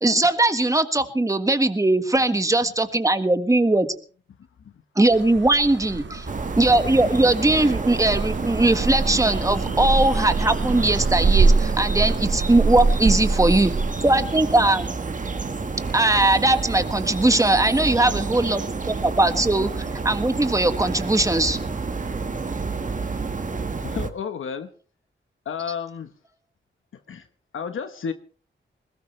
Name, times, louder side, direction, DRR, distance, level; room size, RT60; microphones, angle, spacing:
voice 1, 0.0-3.9 5.0-6.3 6.6-13.7 14.0-14.9 15.9-21.6, right 2 dB, 15° right, 9 dB, 1.6 m, -20 dB
sound 1, 5.1-13.9, right 4 dB, 65° right, 1.8 m, -24 dB
sound 2, 6.3-24.1, right 4 dB, 40° right, 1.7 m, -29 dB
voice 2, 23.8-24.7 25.4-26.1 27.1-27.2 27.5-28.1, left 7 dB, 80° left, 8 dB, 1.1 m, -31 dB
21.0 x 18.0 x 3.3 m, 0.41 s
wide cardioid pair, 85°, 20 cm